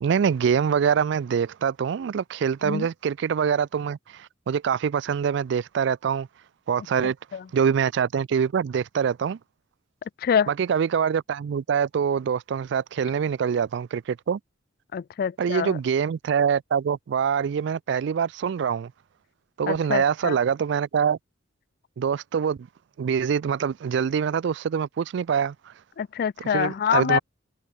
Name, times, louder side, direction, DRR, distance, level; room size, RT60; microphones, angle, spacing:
voice 1, 0.0-6.3 6.7-7.2 7.5-9.4 10.5-14.4 15.4-18.9 19.6-21.2 22.0-22.7 23.0-25.7 26.5-27.2, right 7 dB, 65° right, 0.3 m, -24 dB
voice 2, 7.0-7.5 10.2-10.5 14.9-15.8 19.7-20.4 26.0-27.2, left 7 dB, 50° left, 0.3 m, -26 dB
open air
head